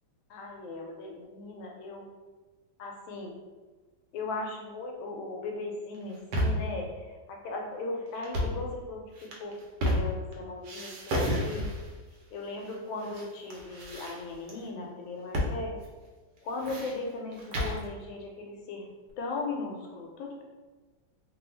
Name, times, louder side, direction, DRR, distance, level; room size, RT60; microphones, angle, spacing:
voice 1, 0.3-2.1 2.8-3.4 4.1-11.7 12.3-15.8 16.4-18.9 19.2-20.4, left 3 dB, 90° left, 1 dB, 1.4 m, -38 dB
sound 1, 5.9-6.7 8.2-8.6 9.2-10.3 10.6-11.9 12.7-13.2 13.5-14.5 15.3-15.6 15.8-15.9 16.4-17.8, equal, 70° right, 1.1 m, -31 dB
3.2 x 2.2 x 3.1 m, 1.3 s
omnidirectional pair, 2.1 m